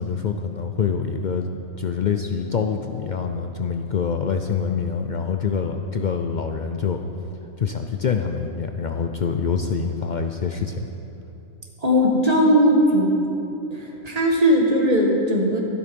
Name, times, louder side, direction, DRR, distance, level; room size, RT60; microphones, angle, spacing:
voice 1, 0.0-1.5 1.8-7.0 7.6-10.9, left 6 dB, 90° left, 5 dB, 0.4 m, -25 dB
voice 2, 11.8-13.2 13.7-15.6, equal, 25° right, 0 dB, 1.6 m, -18 dB
12.5 x 11.5 x 5.3 m, 2.9 s
omnidirectional pair, 1.5 m